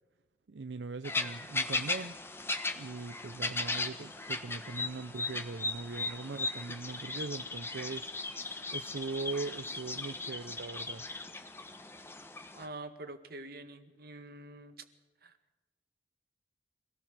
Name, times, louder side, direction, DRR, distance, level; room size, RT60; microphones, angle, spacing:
voice 1, 0.5-2.2 2.8-8.1 8.7-11.1, right 4 dB, 85° right, 12 dB, 0.6 m, -40 dB
sound 1, 1.0-12.7, left 3 dB, 15° left, 1.4 m, -37 dB
voice 2, 12.5-14.8 15.2-15.4, right 2 dB, 60° right, 8 dB, 1.8 m, -46 dB
25.0 x 18.0 x 6.7 m, 1.2 s
head